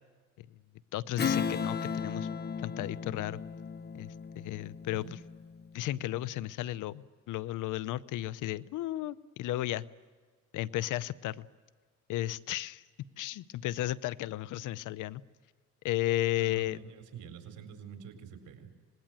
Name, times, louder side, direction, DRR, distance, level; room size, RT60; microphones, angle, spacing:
voice 1, 0.9-2.3 2.6-3.4 3.9-5.0 5.7-9.9 10.5-11.5 12.1-12.8 13.2-15.2 15.8-16.8, left 15 dB, 90° left, 18 dB, 0.8 m, -34 dB
Strum, 1.2-6.1, left 6 dB, 35° left, 0.8 m, -35 dB
voice 2, 16.3-18.9, right 7 dB, 80° right, 6 dB, 4.2 m, -47 dB
25.5 x 21.0 x 9.1 m, 1.5 s
cardioid pair, 90°, 30 cm